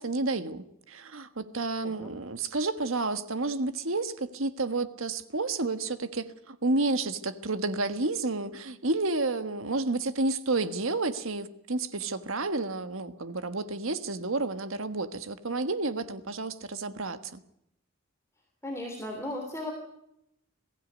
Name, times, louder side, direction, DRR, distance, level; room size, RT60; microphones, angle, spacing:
voice 1, 0.0-17.4, right 3 dB, 75° right, 1.5 m, -30 dB
voice 2, 18.6-19.7, left 1 dB, 15° left, 3.3 m, -35 dB
21.5 x 15.5 x 9.3 m
head